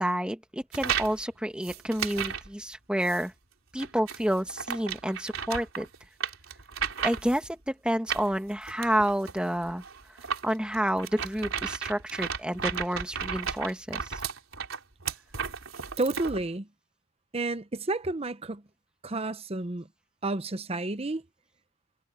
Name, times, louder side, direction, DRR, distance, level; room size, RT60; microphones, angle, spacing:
voice 1, 0.0-3.3 3.7-5.9 7.0-9.8 10.4-14.2, equal, 5° right, 1.5 m, -29 dB
sound 1, 0.7-1.2 1.6-2.5 3.0-3.2 3.8-7.5 8.1-16.4, right 7 dB, 80° right, 3.7 m, -34 dB
voice 2, 16.0-16.7 17.3-18.6 19.0-19.9 20.2-21.2, right 2 dB, 30° right, 0.7 m, -31 dB
head